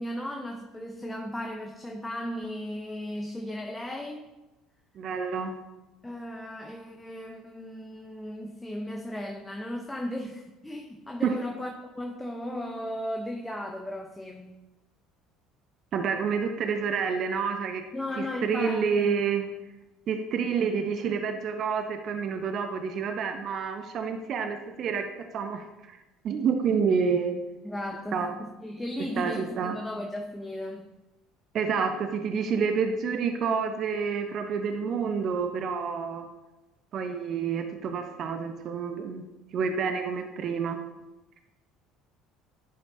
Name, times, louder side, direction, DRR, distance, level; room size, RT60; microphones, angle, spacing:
voice 1, 0.0-4.2 6.0-14.6 17.9-19.2 27.6-30.9, left 1 dB, 10° left, 3 dB, 0.7 m, -36 dB
voice 2, 5.0-5.5 11.2-11.4 15.9-17.8 18.2-19.4 20.1-25.1 25.3-26.0 26.2-27.3 28.1-28.4 29.2-29.8 31.5-36.3 36.9-39.2 39.5-40.8, right 6 dB, 50° right, 6 dB, 0.7 m, -28 dB
11.0 x 5.2 x 2.7 m, 1.0 s
hypercardioid pair, 65°, 0 cm